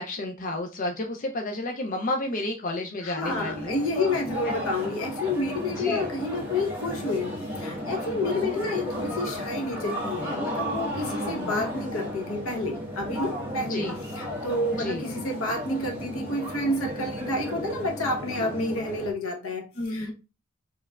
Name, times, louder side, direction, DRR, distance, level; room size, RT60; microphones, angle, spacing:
voice 1, 0.0-4.2 4.4-4.5 5.8-6.0 8.3-9.1 11.1-11.7 13.7-13.9 14.8-15.1 19.8-20.1, left 1 dB, 40° left, 0.5 m, -32 dB
voice 2, 3.0-20.1, left 2 dB, 75° left, 1.0 m, -30 dB
sound 1, 3.2-19.1, equal, 10° right, 1.4 m, -34 dB
4.5 x 3.2 x 2.3 m
head